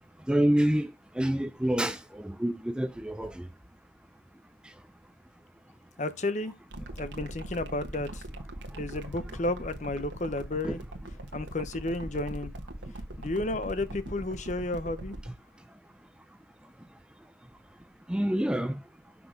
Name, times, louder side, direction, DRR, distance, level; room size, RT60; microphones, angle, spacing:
voice 1, 0.3-0.9 1.2-3.5 10.6-10.8 18.1-18.8, right 1 dB, 5° right, 0.4 m, -27 dB
voice 2, 6.0-6.5 7.0-8.2 8.8-10.8 11.3-12.5 13.2-15.2, left 2 dB, 40° left, 0.7 m, -32 dB
sound 1, 6.7-15.3, right 1 dB, 80° right, 1.4 m, -40 dB
6.0 x 5.9 x 5.1 m
head